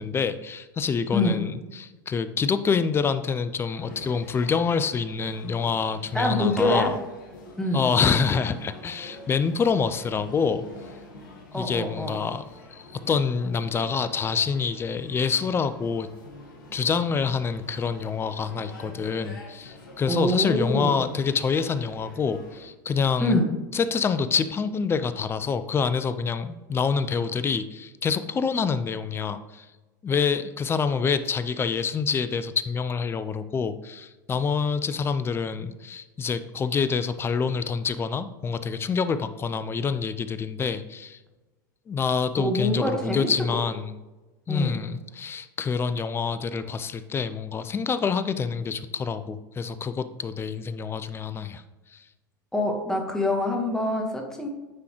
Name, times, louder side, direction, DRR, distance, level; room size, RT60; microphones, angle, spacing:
voice 1, 0.0-7.0 7.7-10.6 11.5-12.4 12.7-16.1 16.7-23.4 23.7-29.7 30.0-41.2 41.9-43.9 44.5-51.6 51.9-52.0, left 5 dB, 20° left, 12 dB, 0.4 m, -26 dB
sound 1, 3.7-22.6, left 2 dB, 80° left, 1.4 m, -46 dB
voice 2, 6.1-6.9 7.6-7.9 11.5-12.2 20.1-21.0 23.2-23.5 42.4-43.3 44.5-44.8 52.5-54.5, left 1 dB, 5° left, 1 dB, 1.2 m, -25 dB
9.5 x 3.8 x 3.0 m, 1.1 s
hypercardioid pair, 95°, 11 cm